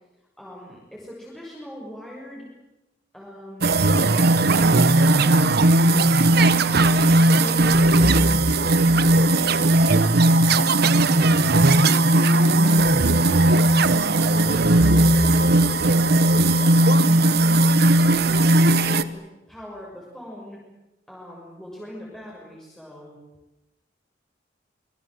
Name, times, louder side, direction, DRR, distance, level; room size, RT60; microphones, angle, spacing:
voice 1, 0.4-2.5 3.1-5.6 5.9-8.2 8.6-9.4 9.6-13.1 13.5-16.1 16.4-17.7 18.0-19.2 19.5-20.6 21.1-23.2, equal, 5° left, -5 dB, 6.4 m, -41 dB
sound 1, 3.6-19.0, right 2 dB, 60° right, 1.1 m, -17 dB
26.0 x 23.0 x 7.9 m, 0.97 s
head